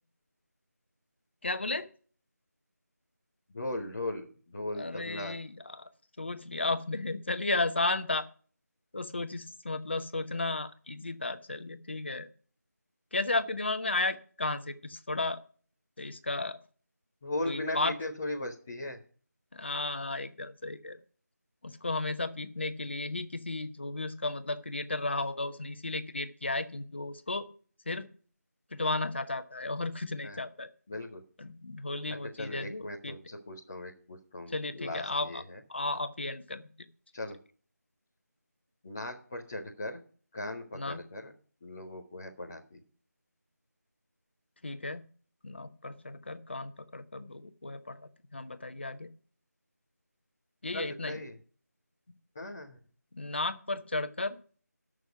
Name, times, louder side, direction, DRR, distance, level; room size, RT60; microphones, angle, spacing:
voice 1, 1.4-1.9 4.7-5.9 6.2-8.3 8.9-12.3 13.1-15.4 16.0-16.6 17.5-18.0 19.5-21.0 21.6-27.5 27.9-28.1 28.7-30.7 31.4-33.2 34.5-35.4 35.7-36.7 40.7-41.0 44.6-45.0 45.4-49.1 50.6-51.2 53.1-54.4, left 2 dB, 40° left, 10 dB, 1.0 m, -34 dB
voice 2, 3.5-4.3 4.5-5.3 17.2-19.0 30.2-30.4 30.9-31.2 32.4-35.4 37.1-37.4 38.8-40.0 40.3-41.3 41.6-42.8 50.7-51.3 52.4-52.8, left 1 dB, 10° left, -5 dB, 0.5 m, -38 dB
12.5 x 6.3 x 5.7 m, 0.43 s
figure-of-eight pair, 165°, 9 cm